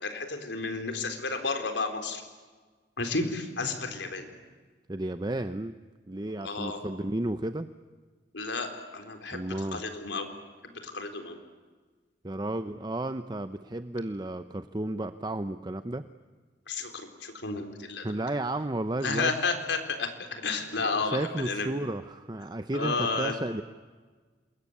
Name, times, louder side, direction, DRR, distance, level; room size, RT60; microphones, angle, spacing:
voice 1, 0.0-2.2 3.0-4.3 6.4-6.8 8.3-10.3 10.6-11.4 16.7-18.1 19.0-21.7 22.7-23.3, left 3 dB, 90° left, 6 dB, 4.1 m, -32 dB
voice 2, 4.9-5.7 6.1-7.7 9.3-9.8 12.2-16.1 18.0-19.3 20.8-23.6, right 1 dB, 25° right, 10 dB, 0.7 m, -33 dB
27.5 x 22.5 x 9.7 m, 1.4 s
head